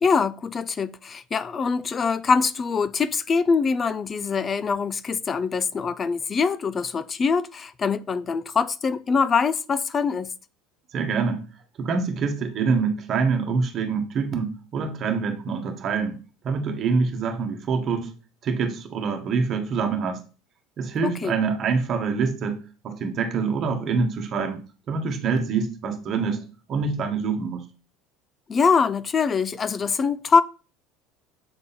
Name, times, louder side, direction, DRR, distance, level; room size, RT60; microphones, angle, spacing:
voice 1, 0.0-10.3 21.0-21.3 28.5-30.4, left 5 dB, 25° left, 0.3 m, -23 dB
voice 2, 10.9-11.4 11.8-16.2 16.4-18.1 18.4-20.2 20.8-22.6 22.8-24.6 24.9-26.4 26.7-27.6, right 5 dB, 35° right, 1.4 m, -25 dB
6.9 x 3.8 x 4.1 m
cardioid pair, 140°, 0 cm